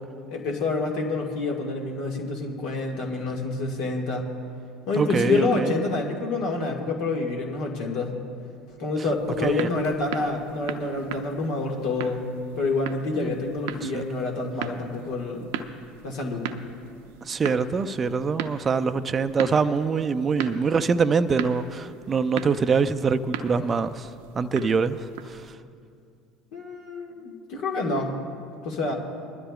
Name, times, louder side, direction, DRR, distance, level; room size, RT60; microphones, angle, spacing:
voice 1, 0.3-4.3 4.9-8.2 8.8-15.5 16.0-16.5 26.5-28.1 28.6-28.9, left 3 dB, 60° left, 1.7 m, -27 dB
voice 2, 5.0-5.7 9.4-9.7 13.2-13.3 13.9-14.0 17.2-24.1 24.4-25.4, right 5 dB, 30° right, 0.5 m, -24 dB
sound 1, 9.1-25.5, right 8 dB, 65° right, 0.6 m, -38 dB
22.0 x 12.5 x 2.4 m
hypercardioid pair, 70°, 0 cm